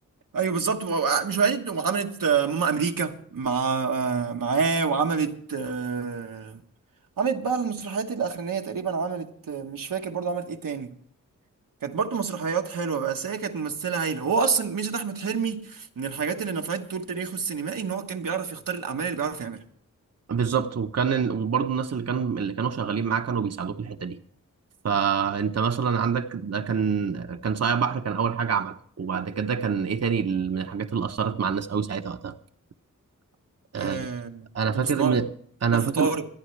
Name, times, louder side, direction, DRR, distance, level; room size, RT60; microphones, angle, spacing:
voice 1, 0.3-6.6 7.2-10.9 11.8-19.6 33.7-34.5 34.8-35.2 35.7-36.3, right 5 dB, 85° right, 1.3 m, -27 dB
voice 2, 20.3-24.2 24.8-32.3 33.7-34.1 34.5-35.3 35.6-36.1, right 6 dB, 50° right, 0.9 m, -26 dB
26.0 x 9.3 x 3.3 m
cardioid pair, 55°, 32 cm